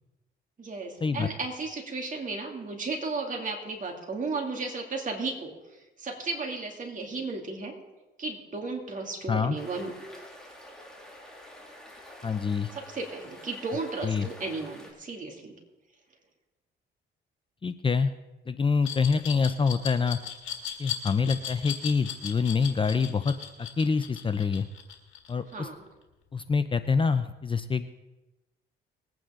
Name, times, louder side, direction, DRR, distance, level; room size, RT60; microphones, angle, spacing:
voice 1, 0.6-5.5 6.0-7.7 8.2-9.9 12.7-15.5 25.5-25.8, right 3 dB, 40° right, 1 dB, 2.7 m, -34 dB
sound 1, 9.6-14.9, left 1 dB, 5° left, 3.1 m, -48 dB
voice 2, 12.2-12.7 14.0-14.3 17.6-18.1 18.5-20.2 20.8-23.3 23.6-24.7 25.3-25.7 26.3-27.9, left 5 dB, 25° left, 11 dB, 0.6 m, -26 dB
Glass, 18.8-25.7, left 9 dB, 85° left, 1.8 m, -37 dB
21.0 x 9.1 x 3.8 m, 1.1 s
cardioid pair, 90°, 20 cm